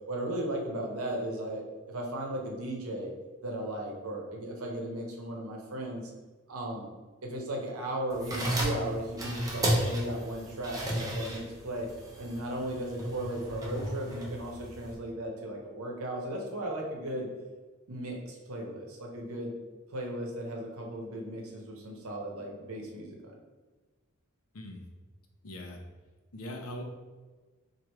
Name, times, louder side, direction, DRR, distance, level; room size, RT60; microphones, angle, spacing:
voice 1, 0.1-3.1 3.4-6.1 6.5-6.9 7.2-11.9 12.2-17.3 17.9-19.6 19.9-23.3, right 1 dB, 80° right, 0 dB, 0.8 m, -36 dB
sound 1, 8.1-14.9, right 1 dB, 15° right, 0.7 m, -33 dB
voice 2, 25.4-25.8 26.3-26.8, left 1 dB, 80° left, 3 dB, 0.6 m, -41 dB
4.6 x 2.6 x 3.0 m, 1.3 s
head